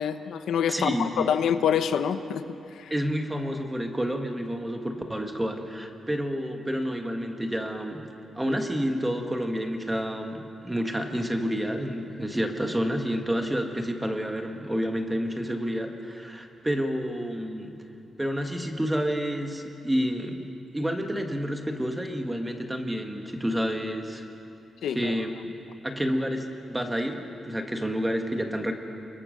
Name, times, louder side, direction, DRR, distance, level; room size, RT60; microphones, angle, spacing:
voice 1, 0.0-2.5 2.8-2.9 24.8-25.1, left 8 dB, 85° left, 9 dB, 1.0 m, -26 dB
voice 2, 0.7-1.3 2.9-8.1 8.3-17.8 18.2-24.2 24.9-25.3 25.8-28.8, equal, 10° right, 4 dB, 1.7 m, -29 dB
29.0 x 22.0 x 6.6 m, 2.7 s
wide cardioid pair, 165°, 0 cm